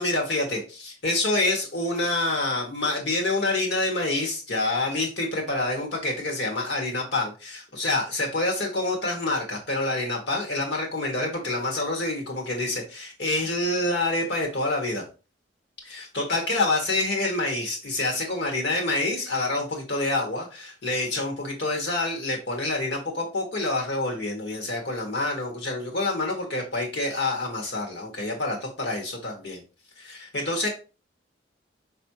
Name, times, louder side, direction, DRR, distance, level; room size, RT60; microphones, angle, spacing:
voice 1, 0.0-15.0 15.8-29.6 30.0-30.7, left 2 dB, 65° left, 1 dB, 1.6 m, -27 dB
5.5 x 3.3 x 2.9 m, 0.32 s
head